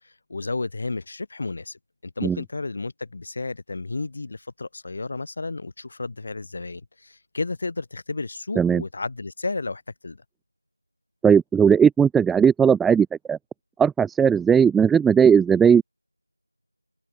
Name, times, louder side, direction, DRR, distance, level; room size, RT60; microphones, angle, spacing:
voice 1, 0.3-1.8 2.2-10.2, left 3 dB, 30° left, 5.1 m, -32 dB
voice 2, 11.2-13.4 13.8-15.8, right 7 dB, ahead, 0.9 m, -17 dB
figure-of-eight pair, 175°, 0 cm